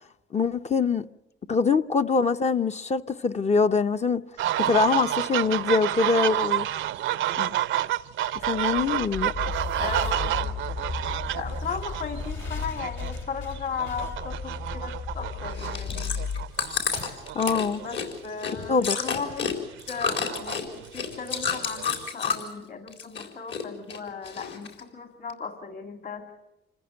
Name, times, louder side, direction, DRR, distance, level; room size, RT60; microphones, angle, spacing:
voice 1, 0.3-1.0 1.5-4.2 4.6-6.7 7.4-7.6 8.4-9.3 17.3-17.8 18.7-19.0, left 4 dB, 35° left, 0.7 m, -24 dB
sound 1, 4.4-18.2 18.9-19.1 19.3-22.1, right 13 dB, 80° right, 0.7 m, -30 dB
sound 2, 8.4-17.5, left 5 dB, 80° left, 3.0 m, -35 dB
voice 2, 9.8-10.6 11.3-16.2 17.4-19.5 19.9-26.2, left 5 dB, 50° left, 2.3 m, -36 dB
Chewing mastication, 15.5-22.6 22.9-23.6 23.9-24.8 25.3-25.4, left 6 dB, 65° left, 4.3 m, -30 dB
27.0 x 15.0 x 8.9 m
cardioid pair, 90°, 20 cm